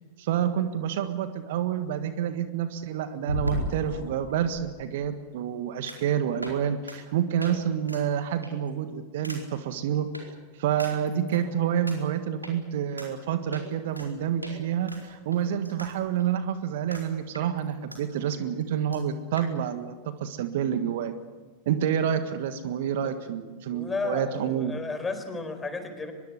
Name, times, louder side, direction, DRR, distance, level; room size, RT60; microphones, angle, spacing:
voice 1, 0.2-10.1 10.6-21.1 21.7-24.8, right 9 dB, 55° right, 10 dB, 1.7 m, -28 dB
sound 1, 0.8-0.9 3.2-4.5 5.9-6.1 6.4-6.6 6.9-7.0 7.4-7.5 7.9-8.0 8.4-8.7 9.2-9.4 10.1-10.2 10.8-11.4 11.9-12.0 12.4-12.5 13.0-13.1 13.5-14.1 14.4-14.6 14.9-15.9 16.2-16.3 16.9-17.1 17.3-18.0 18.3-18.4 18.6-18.7 18.9-19.0 19.4-19.5, equal, 90° right, 4.5 m, -35 dB
voice 2, 23.7-26.1, left 4 dB, 15° left, 7 dB, 4.5 m, -33 dB
24.0 x 22.5 x 8.2 m, 1.3 s
figure-of-eight pair, 90°, 0 cm